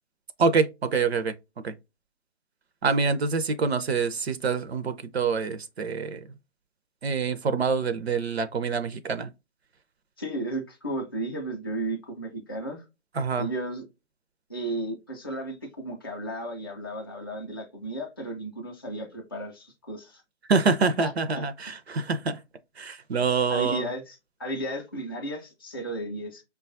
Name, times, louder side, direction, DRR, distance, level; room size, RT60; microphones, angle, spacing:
voice 1, 0.4-1.3 1.6-1.7 2.8-6.2 7.0-9.3 13.2-13.5 20.5-22.4 22.8-23.9, right 4 dB, 65° right, 0.5 m, -26 dB
voice 2, 10.2-12.8 13.4-13.9 14.5-20.2 20.8-21.1 21.4-21.5 23.5-26.4, right 1 dB, 20° left, 0.4 m, -34 dB
5.1 x 2.3 x 2.5 m
figure-of-eight pair, 150°, 35 cm